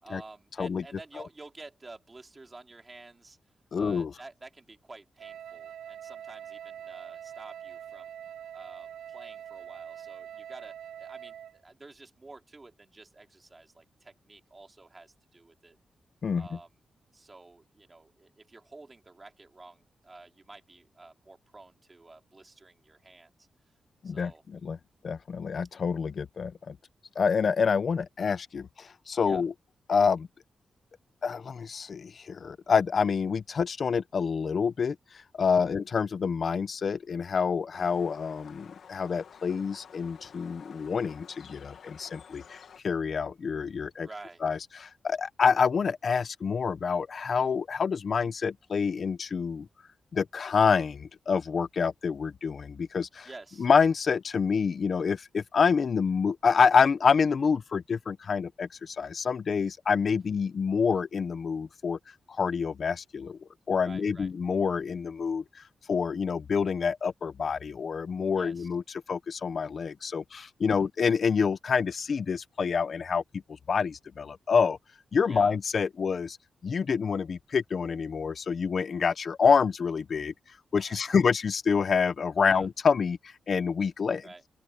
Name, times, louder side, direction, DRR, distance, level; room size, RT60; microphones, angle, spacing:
voice 1, 0.0-3.4 3.8-8.1 8.5-15.8 16.3-16.8 17.1-23.5 24.0-24.4 29.2-29.4 35.6-35.7 44.0-44.4 53.2-53.7 63.8-64.3 68.4-68.7 70.7-70.9 75.3-75.6 80.7-81.1 82.4-82.7 84.2-84.4, right 3 dB, 30° right, 4.7 m, -50 dB
voice 2, 3.7-4.1 16.2-16.5 24.0-24.8 25.0-26.8 27.2-29.5 29.9-30.3 31.2-35.0 35.3-44.1 44.4-49.7 50.1-53.3 53.6-62.0 62.3-63.4 63.7-65.6 65.9-68.8 69.1-73.2 73.7-74.8 75.1-76.4 76.6-80.3 80.7-84.3, left 6 dB, 60° left, 1.0 m, -27 dB
Wind instrument woodwind instrument, 5.2-11.6, right 10 dB, 90° right, 7.2 m, -44 dB
sound 1, 37.7-42.8, left 7 dB, 75° left, 2.2 m, -51 dB
open air
cardioid pair, 70°, 0 cm